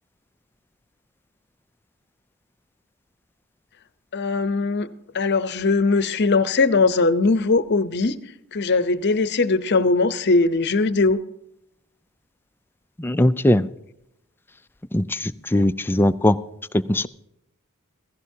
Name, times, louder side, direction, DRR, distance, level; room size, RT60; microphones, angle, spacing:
voice 1, 4.1-4.9 5.1-8.2 8.5-11.2, left 3 dB, 50° left, 0.7 m, -20 dB
voice 2, 13.0-13.7 14.9-16.4 16.7-17.1, left 1 dB, 10° left, 0.4 m, -20 dB
16.5 x 15.5 x 2.8 m
head